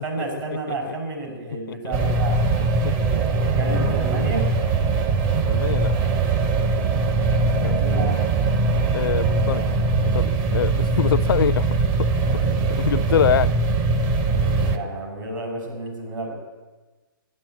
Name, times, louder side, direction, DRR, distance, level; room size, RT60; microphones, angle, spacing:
voice 1, 0.0-2.4 3.1-4.5 6.9-7.3 7.6-8.2 12.4-12.7 14.2-16.3, right 2 dB, 60° right, 6.3 m, -32 dB
sound 1, 1.9-14.8, right 3 dB, 25° right, 0.7 m, -21 dB
voice 2, 2.6-3.0 5.5-5.9 7.6-7.7 8.9-9.7 10.0-11.7 12.8-13.6, left 9 dB, 65° left, 0.4 m, -24 dB
13.0 x 11.5 x 8.9 m
hypercardioid pair, 150°, 12 cm